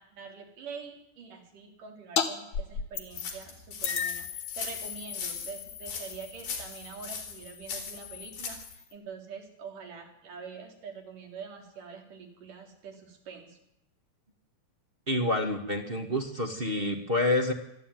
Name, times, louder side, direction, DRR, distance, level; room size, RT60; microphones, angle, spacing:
voice 1, 0.0-13.6, right 5 dB, 60° right, 3 dB, 5.4 m, -45 dB
sound 1, 2.2-2.3 2.5-3.4 3.8-8.9, left 7 dB, 55° left, 2.8 m, -36 dB
sound 2, 3.1-8.7, left 5 dB, 70° left, 5.6 m, -39 dB
voice 2, 15.1-17.5, left 1 dB, 20° right, 2 dB, 1.5 m, -28 dB
25.0 x 14.0 x 9.4 m, 0.84 s
omnidirectional pair, 4.3 m